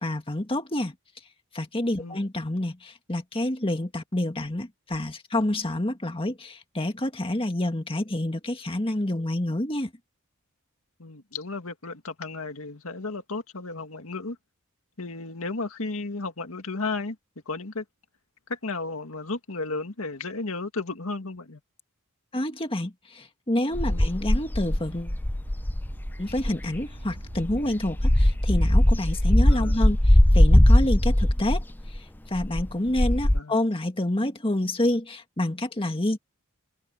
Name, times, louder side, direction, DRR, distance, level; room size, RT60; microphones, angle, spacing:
voice 1, 0.0-0.9 1.5-9.9 22.3-25.2 26.2-31.6 32.3-36.2, left 1 dB, 25° left, 1.9 m, -28 dB
voice 2, 11.0-14.4 15.0-17.2 17.5-17.8 18.5-21.6 23.9-24.0 29.5-29.8 33.3-33.6, left 3 dB, 75° left, 1.9 m, -33 dB
sound 1, 23.7-26.8 27.3-32.0 32.4-33.4, left 1 dB, 10° left, 0.5 m, -20 dB
sound 2, 24.1-29.1, equal, 55° right, 4.0 m, -42 dB
head